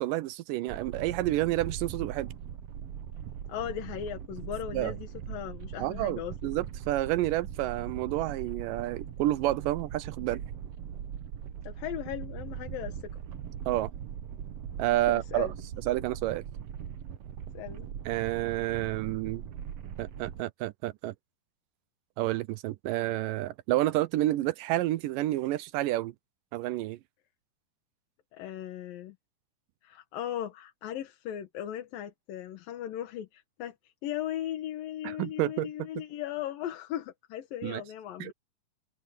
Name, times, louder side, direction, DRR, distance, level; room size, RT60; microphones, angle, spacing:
voice 1, 0.0-2.3 4.7-5.0 5.8-10.4 13.7-13.9 14.8-15.5 15.9-16.4 18.1-19.4 20.0-21.1 22.2-26.1 26.5-27.0 35.0-35.7 37.6-37.8 38.2-38.3, right 15 dB, 80° right, 2.2 m, -29 dB
sound 1, 0.7-20.4, right 9 dB, 65° right, 1.7 m, -40 dB
voice 2, 3.5-6.5 11.6-13.1 15.1-15.5 17.5-17.9 28.3-29.2 29.8-38.3, left 11 dB, 80° left, 3.2 m, -37 dB
omnidirectional pair, 4.0 m